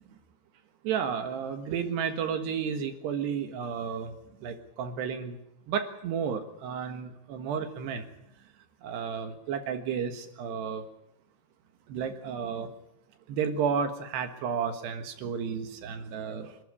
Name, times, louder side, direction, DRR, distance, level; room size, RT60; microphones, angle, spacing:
voice 1, 0.9-4.1 4.4-5.4 5.7-8.1 8.8-10.8 11.9-12.7 13.3-16.5, right 7 dB, 70° right, 7 dB, 3.5 m, -32 dB
27.0 x 13.0 x 9.9 m, 0.80 s
omnidirectional pair, 5.2 m